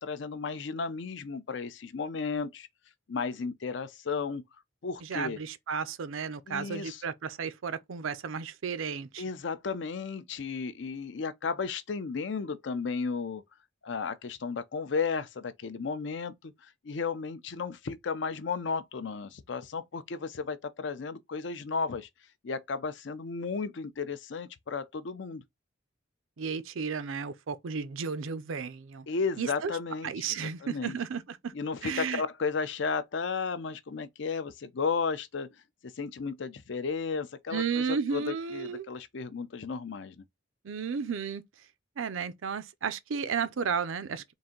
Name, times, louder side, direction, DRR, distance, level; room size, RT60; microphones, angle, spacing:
voice 1, 0.0-2.7 3.1-4.4 4.8-5.4 6.5-7.0 9.2-13.4 13.8-16.5 16.8-22.1 22.4-25.4 29.1-31.0 31.5-35.5 35.8-40.2, left 5 dB, 60° left, 0.5 m, -34 dB
voice 2, 5.0-9.2 26.4-29.1 29.4-29.7 30.0-31.5 31.8-32.2 37.5-38.9 40.6-41.4 42.0-44.2, right 6 dB, 80° right, 0.5 m, -33 dB
3.9 x 2.6 x 3.7 m
head